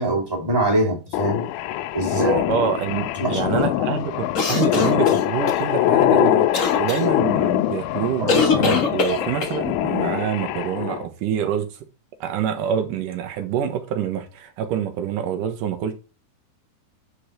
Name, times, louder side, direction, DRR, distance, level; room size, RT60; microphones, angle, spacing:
voice 1, 0.0-1.5 1.9-2.3 3.1-3.7 8.2-8.3 9.1-9.2, right 1 dB, 10° right, 2.1 m, -23 dB
sound 1, 1.1-11.1, left 14 dB, 80° left, 2.0 m, -23 dB
voice 2, 2.1-6.5 6.8-11.8 12.2-15.9, right 9 dB, 80° right, 2.8 m, -26 dB
sound 2, 4.3-5.6 6.5-7.0 8.3-9.6, left 4 dB, 50° left, 0.9 m, -22 dB
8.6 x 5.0 x 4.4 m
omnidirectional pair, 3.7 m